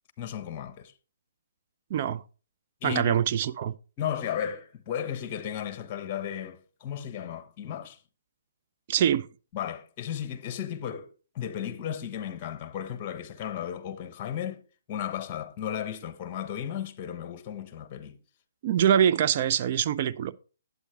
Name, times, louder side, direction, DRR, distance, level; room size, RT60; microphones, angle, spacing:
voice 1, 0.2-0.9 2.8-3.2 4.0-8.0 9.5-14.6 14.9-18.2, left 9 dB, 35° left, 1.0 m, -34 dB
voice 2, 1.9-2.2 2.8-3.7 8.9-9.3 18.6-20.3, right 9 dB, 45° right, 0.5 m, -24 dB
8.2 x 8.2 x 3.5 m
hypercardioid pair, 140°, 0 cm